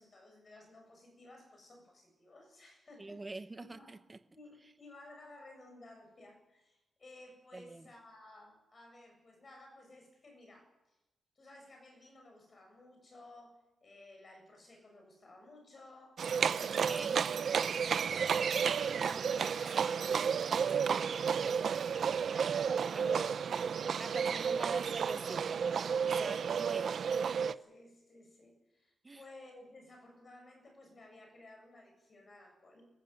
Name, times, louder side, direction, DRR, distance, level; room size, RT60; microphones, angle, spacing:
voice 1, 0.0-4.0 4.3-11.0 11.3-16.3 16.6-17.7 18.0-23.7 24.0-24.8 27.6-32.9, left 2 dB, 30° left, 3 dB, 7.7 m, -56 dB
voice 2, 3.0-4.2 7.5-7.9 16.9-17.2 22.9-23.2 24.0-27.0 29.0-29.2, right 2 dB, 15° right, 10 dB, 1.1 m, -45 dB
Livestock farm animals working animals, 16.2-27.5, right 7 dB, 55° right, 0.7 m, -32 dB
23.5 x 15.0 x 9.2 m, 0.97 s
wide cardioid pair, 160°, 0 cm